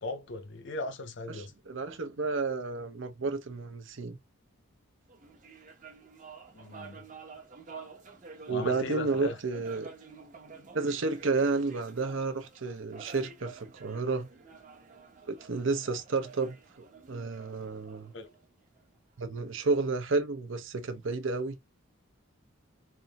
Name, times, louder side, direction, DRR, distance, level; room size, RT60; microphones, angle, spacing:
voice 1, 0.0-1.5 6.5-7.1 8.5-9.4 18.1-18.3, left 2 dB, 55° left, 0.6 m, -38 dB
voice 2, 1.3-4.2 8.5-9.9 10.7-14.3 15.3-16.5 17.1-18.1 19.2-21.5, right 3 dB, 65° right, 0.8 m, -31 dB
sound 1, 5.1-18.8, right 5 dB, 40° right, 0.9 m, -50 dB
3.5 x 2.6 x 4.0 m
head